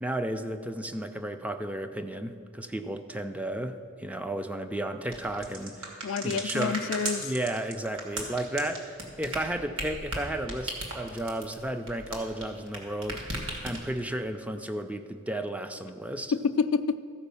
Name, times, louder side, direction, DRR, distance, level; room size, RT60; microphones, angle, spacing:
voice 1, 0.0-6.9 7.2-13.2 13.6-16.3, right 1 dB, 5° right, 8 dB, 0.4 m, -33 dB
sound 1, 5.1-12.8 13.0-14.0, right 2 dB, 65° right, 1.9 m, -35 dB
voice 2, 6.0-7.3 16.3-17.0, left 5 dB, 65° left, 10 dB, 0.4 m, -28 dB
14.0 x 4.9 x 6.8 m, 2.5 s
head